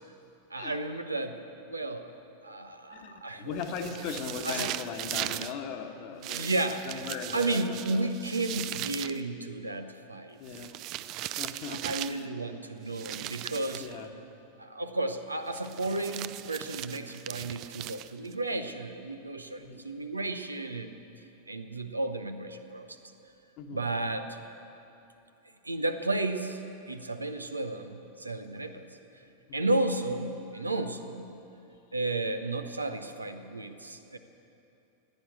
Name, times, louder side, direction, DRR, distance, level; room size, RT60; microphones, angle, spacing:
voice 1, 0.5-1.4 1.7-2.1 2.4-3.5 4.4-4.7 6.2-6.9 7.3-10.4 11.8-13.8 14.6-21.0 21.5-23.0 23.7-24.3 25.6-26.6 26.9-28.9 29.5-31.3 31.9-34.2, right 2 dB, 80° right, 8 dB, 0.8 m, -33 dB
voice 2, 2.9-8.1 10.4-10.8 11.4-12.3 13.8-14.1 19.6-19.8 23.6-23.8 28.7-28.8 29.5-29.7 30.5-30.6 31.4-31.5, left 6 dB, 45° left, 5 dB, 1.3 m, -39 dB
sound 1, 3.6-5.5 6.2-9.2 10.5-12.2 12.9-13.9 15.5-18.3, right 15 dB, 40° right, 0.4 m, -38 dB
16.0 x 10.0 x 7.8 m, 2.8 s
figure-of-eight pair, 90°, 0 cm